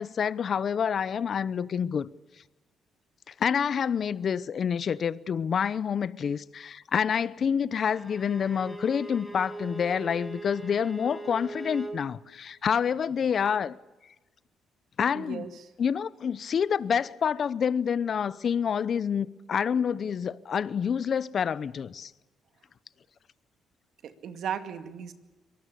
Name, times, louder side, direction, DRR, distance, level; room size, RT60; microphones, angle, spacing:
voice 1, 0.0-2.1 3.3-13.7 15.0-15.5 15.8-22.1, left 7 dB, 50° left, 0.8 m, -28 dB
Bowed string instrument, 7.9-12.0, right 2 dB, 5° left, 6.0 m, -40 dB
voice 2, 15.1-15.7 24.0-25.1, right 8 dB, 70° right, 2.2 m, -36 dB
24.5 x 19.0 x 8.5 m
cardioid pair, 90°, 0 cm